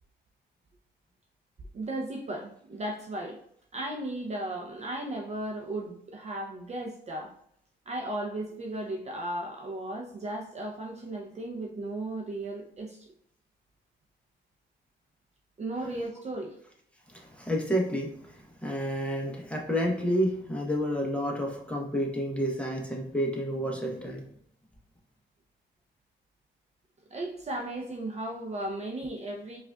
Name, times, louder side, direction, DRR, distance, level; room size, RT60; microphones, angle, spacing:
voice 1, 1.7-3.4 3.7-7.3 7.9-13.1 15.6-16.6 27.1-29.6, right 1 dB, 35° right, 1 dB, 0.6 m, -35 dB
voice 2, 17.1-24.2, equal, 5° left, 0 dB, 0.9 m, -30 dB
4.7 x 2.4 x 2.3 m, 0.69 s
cardioid pair, 90°, 20 cm